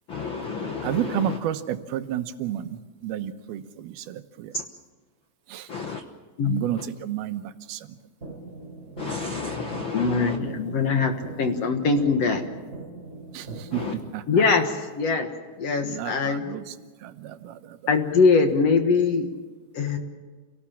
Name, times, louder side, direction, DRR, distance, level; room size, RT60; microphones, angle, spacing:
voice 1, 0.1-1.4 4.5-4.6 5.7-6.0 6.8-6.9 9.0-10.4 13.7-14.0, left 4 dB, 75° left, 5 dB, 1.1 m, -32 dB
voice 2, 0.8-4.5 5.5-5.7 6.4-7.9 13.3-14.5 15.8-16.8 17.0-17.8, right 11 dB, 90° right, 10 dB, 2.9 m, -31 dB
sound 1, 8.2-14.2, right 3 dB, 20° right, 3.4 m, -41 dB
voice 3, 9.9-11.1 11.4-12.4 14.3-15.3 15.6-16.4 17.9-19.3 19.7-20.0, left 4 dB, 55° left, 5 dB, 2.2 m, -22 dB
28.0 x 18.0 x 7.3 m, 1.4 s
omnidirectional pair, 4.2 m